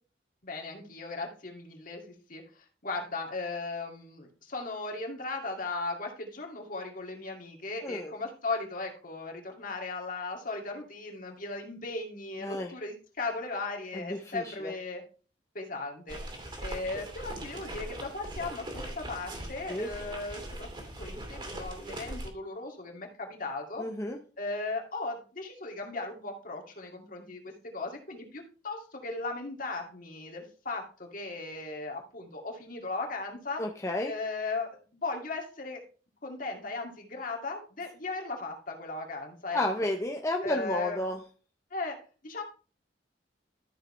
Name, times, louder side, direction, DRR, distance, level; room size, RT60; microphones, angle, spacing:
voice 1, 0.4-15.0 15.5-16.2 16.6-20.7 21.0-23.9 24.4-33.6 34.1-35.8 36.2-39.6 40.4-41.0 41.7-42.0 42.2-42.4, left 3 dB, 50° left, 1 dB, 2.4 m, -37 dB
voice 2, 12.4-12.7 13.9-14.7 19.7-19.9 23.8-24.2 33.6-34.1 39.5-41.2, left 1 dB, 15° left, 2 dB, 0.9 m, -32 dB
sound 1, 16.1-22.3, right 1 dB, 30° right, 2.6 m, -40 dB
13.5 x 6.5 x 3.2 m, 0.36 s
head